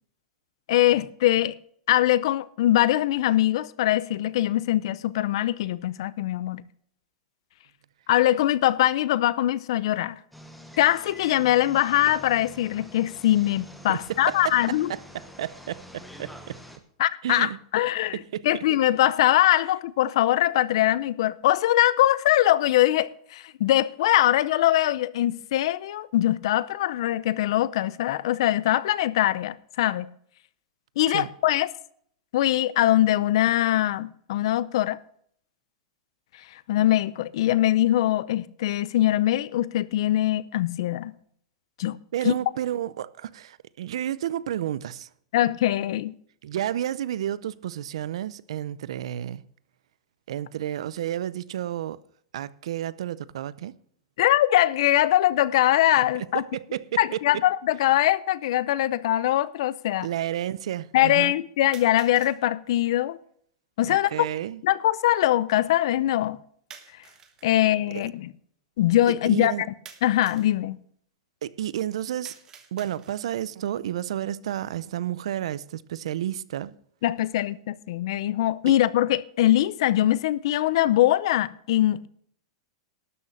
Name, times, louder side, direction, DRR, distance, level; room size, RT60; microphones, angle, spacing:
voice 1, 0.7-1.6 1.9-6.6 8.1-10.2 10.8-14.9 17.0-18.2 18.4-30.1 31.0-31.7 32.3-35.0 36.7-41.1 41.8-42.0 42.2-42.3 45.3-46.1 54.2-56.4 57.0-60.1 60.9-63.2 63.8-64.3 64.6-66.4 67.4-68.3 68.8-69.5 70.0-70.8 77.0-82.1, left 14 dB, 60° left, 0.7 m, -22 dB
sound 1, 10.3-16.8, equal, ahead, 1.2 m, -46 dB
voice 2, 13.9-16.6 17.2-17.6 18.1-18.5 31.1-31.3 42.1-45.1 46.4-49.4 50.3-52.0 52.3-53.7 56.3-57.2 60.0-61.3 63.9-64.6 67.9-68.0 69.3-69.6 71.4-72.3 72.7-76.7, right 11 dB, 80° right, 0.6 m, -31 dB
sound 2, 57.4-57.5 58.4-58.5 61.7-62.4 66.7-67.6 69.9-70.6 72.2-73.4, right 7 dB, 20° right, 1.4 m, -49 dB
12.5 x 6.6 x 7.3 m
supercardioid pair, 160°, 3 cm